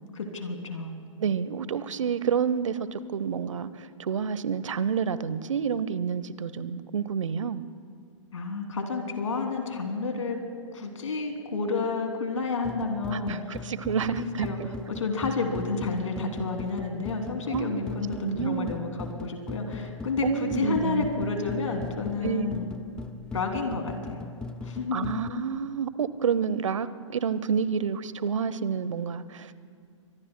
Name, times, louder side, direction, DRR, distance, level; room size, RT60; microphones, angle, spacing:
voice 1, 0.1-0.9 8.3-10.4 10.7-13.7 14.1-14.6 14.9-22.7 23.3-24.3 24.6-25.2, left 4 dB, 75° left, 4 dB, 2.7 m, -30 dB
voice 2, 1.2-7.6 13.1-14.7 17.5-17.8 18.2-18.7 20.2-21.1 22.2-22.6 24.9-29.5, right 7 dB, 70° right, 15 dB, 0.8 m, -29 dB
sound 1, 12.6-25.3, left 3 dB, 5° left, 0.4 m, -39 dB
24.5 x 22.5 x 2.2 m, 2.3 s
figure-of-eight pair, 120°, 17 cm